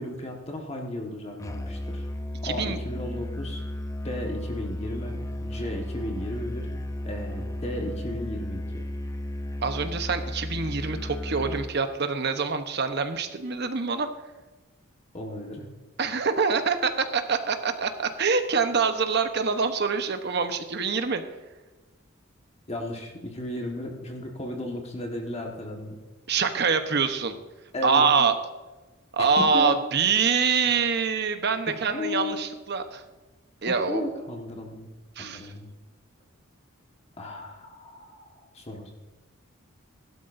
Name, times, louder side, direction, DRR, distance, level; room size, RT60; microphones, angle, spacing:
voice 1, 0.0-2.1 2.4-3.6 4.0-8.8 15.1-15.7 22.7-26.0 27.7-28.3 29.2-29.8 31.7-32.5 33.7-34.9 35.2-35.7 37.2-38.9, left 1 dB, 30° left, 1 dB, 1.5 m, -35 dB
Musical instrument, 1.4-11.8, left 1 dB, 15° left, 0.6 m, -34 dB
voice 2, 2.4-2.8 9.6-14.1 16.0-21.2 26.3-27.3 27.8-28.3 29.1-33.0 33.6-34.1 35.2-35.5, right 5 dB, 55° right, 8 dB, 0.9 m, -25 dB
16.0 x 12.0 x 2.6 m, 1.2 s
head